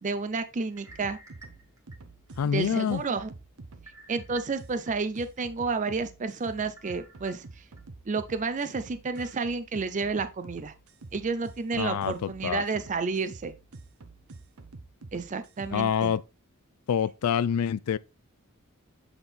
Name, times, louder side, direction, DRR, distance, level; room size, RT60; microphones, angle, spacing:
voice 1, 0.0-1.2 2.4-3.3 4.1-7.6 8.1-10.7 11.1-13.5 15.1-16.2, right 4 dB, 35° right, 0.5 m, -31 dB
sound 1, 0.7-2.4 2.9-3.0 3.9-4.9 5.4-5.5 6.8-7.8 8.3-8.4 9.2-9.4, right 2 dB, 15° right, 1.7 m, -52 dB
sound 2, 0.9-16.1, right 3 dB, 75° right, 0.9 m, -48 dB
voice 2, 2.4-3.0 11.7-12.6 15.7-16.2 16.9-18.0, left 8 dB, 90° left, 0.4 m, -26 dB
8.0 x 3.6 x 4.1 m
head